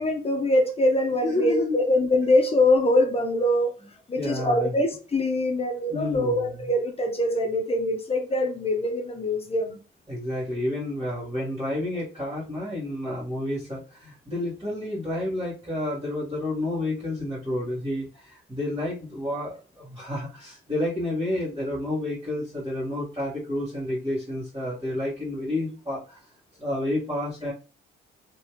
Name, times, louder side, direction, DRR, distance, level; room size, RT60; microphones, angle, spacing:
voice 1, 0.0-3.7 4.1-9.8, left 1 dB, 30° left, 0.6 m, -23 dB
voice 2, 1.2-1.8 4.2-4.7 5.9-6.5 10.1-26.3 26.6-27.5, left 1 dB, 20° right, 1.6 m, -30 dB
3.2 x 2.8 x 2.9 m
cardioid pair, 90°, 20 cm